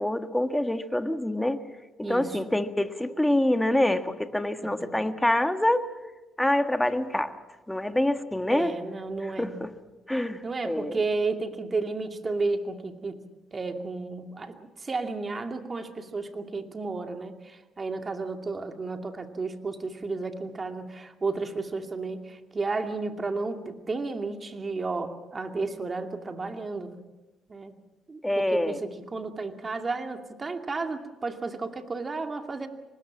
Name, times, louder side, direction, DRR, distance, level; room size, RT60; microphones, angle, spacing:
voice 1, 0.0-1.6 2.0-5.9 6.4-7.3 7.7-8.7 9.4-9.7 10.1-11.0 28.2-28.8, left 1 dB, 5° left, 8 dB, 1.7 m, -26 dB
voice 2, 2.0-2.5 4.6-4.9 8.5-9.6 10.4-13.2 13.5-26.9 27.5-27.7 28.1-32.7, right 3 dB, 30° right, 5 dB, 2.5 m, -32 dB
24.5 x 20.0 x 7.4 m, 1.1 s
cardioid pair, 90°, 0 cm